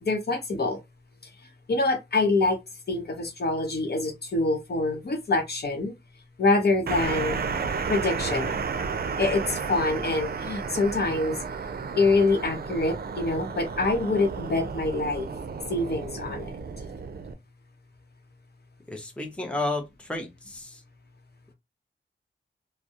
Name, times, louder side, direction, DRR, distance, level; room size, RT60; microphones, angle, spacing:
voice 1, 0.0-0.8 1.7-2.6 2.9-5.9 6.4-7.4 7.9-8.5 9.2-11.4 12.0-15.3 15.7-16.5, left 3 dB, 55° left, 0.8 m, -25 dB
sound 1, 6.9-17.3, right 5 dB, 50° right, 0.4 m, -32 dB
voice 2, 18.9-20.8, left 2 dB, 5° left, 0.7 m, -32 dB
2.3 x 2.0 x 2.7 m
cardioid pair, 65°, 20 cm